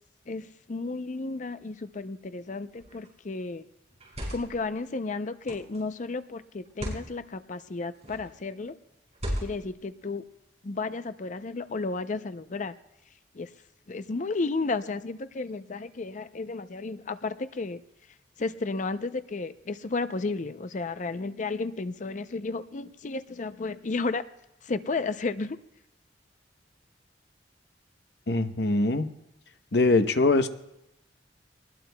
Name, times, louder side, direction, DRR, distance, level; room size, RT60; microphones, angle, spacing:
voice 1, 0.3-3.7 4.3-8.8 9.4-10.2 10.6-12.7 13.3-13.5 13.9-17.8 18.4-24.2 24.6-25.6, left 3 dB, 45° left, 12 dB, 0.5 m, -33 dB
sound 1, 2.8-3.1 3.9-4.6 5.4-5.8 6.6-7.1 8.0-8.3 9.1-9.8, equal, 40° right, 5.6 m, -36 dB
voice 2, 28.3-29.1 29.7-30.5, left 2 dB, 65° left, 8 dB, 0.8 m, -22 dB
21.5 x 20.0 x 2.3 m, 0.86 s
head